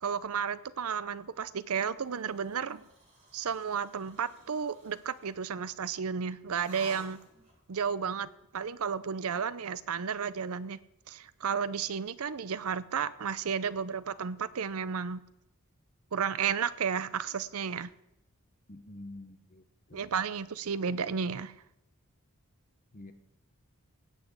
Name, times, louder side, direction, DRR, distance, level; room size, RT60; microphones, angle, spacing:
voice 1, 0.0-2.8 3.3-7.2 7.7-8.3 8.5-10.8 11.1-15.2 16.1-17.9 19.9-21.5, right 6 dB, 75° right, 17 dB, 0.6 m, -33 dB
sound 1, 2.0-5.4 6.5-7.6, right 2 dB, 30° right, 3.4 m, -53 dB
voice 2, 18.7-19.6 19.9-20.1 22.9-23.1, left 2 dB, 40° left, 8 dB, 1.1 m, -47 dB
17.0 x 6.1 x 8.0 m, 0.85 s
head